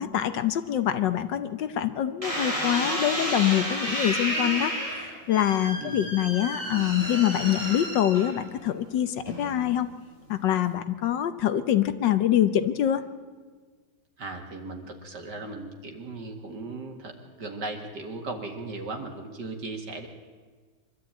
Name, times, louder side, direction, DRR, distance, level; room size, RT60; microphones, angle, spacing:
voice 1, 0.0-9.9 10.3-13.0, left 11 dB, 70° left, 11 dB, 1.5 m, -25 dB
sound 1, 2.2-8.6 9.3-9.7, equal, 15° right, 7.6 m, -31 dB
voice 2, 14.2-17.1 17.4-20.1, right 3 dB, 60° right, 3 dB, 2.7 m, -37 dB
24.5 x 12.5 x 8.9 m, 1.5 s
omnidirectional pair, 2.1 m